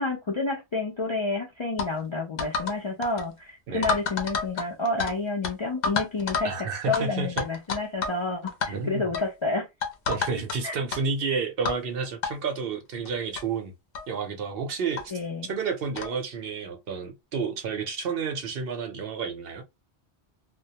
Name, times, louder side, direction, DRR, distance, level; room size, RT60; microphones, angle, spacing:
voice 1, 0.0-9.7 10.6-10.8 15.1-15.5, left 3 dB, 45° left, 0.3 m, -29 dB
sound 1, 1.8-1.9 2.4-2.8 3.0-3.2 3.8-5.1 5.4-5.5 5.8-6.5 6.9-7.0 7.4-8.2 8.5-8.7 9.1-9.3 9.8-10.6 10.9-11.0 11.7-11.8 12.2-12.3 13.1-13.2 13.4-13.5 13.9-14.1 15.0-15.1 16.0-16.2, left 5 dB, 65° left, 0.7 m, -29 dB
voice 2, 6.4-7.4 8.7-9.1 10.1-13.7 14.1-15.1 15.5-19.6, right 5 dB, 65° right, 0.8 m, -30 dB
2.2 x 2.1 x 2.7 m
omnidirectional pair, 1.1 m